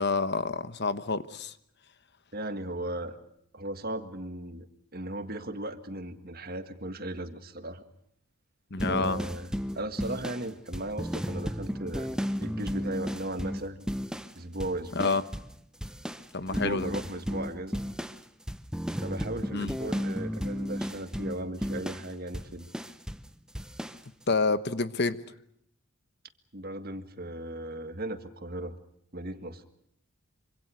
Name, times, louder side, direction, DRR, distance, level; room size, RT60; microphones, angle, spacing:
voice 1, 0.0-1.5 8.7-9.2 14.9-15.2 16.3-16.9 19.5-19.7 24.3-25.2, left 3 dB, 50° left, 12 dB, 1.1 m, -28 dB
voice 2, 2.3-3.2 3.5-4.7 4.9-7.8 8.8-12.1 12.4-13.9 14.4-15.2 16.5-17.8 19.0-22.7 26.5-28.7 29.1-29.6, right 1 dB, 45° right, 9 dB, 1.8 m, -36 dB
sound 1, 8.8-14.3 14.6-15.6 15.8-23.3 23.5-24.0, equal, 5° right, 1.0 m, -34 dB
26.5 x 25.5 x 6.4 m, 0.71 s
head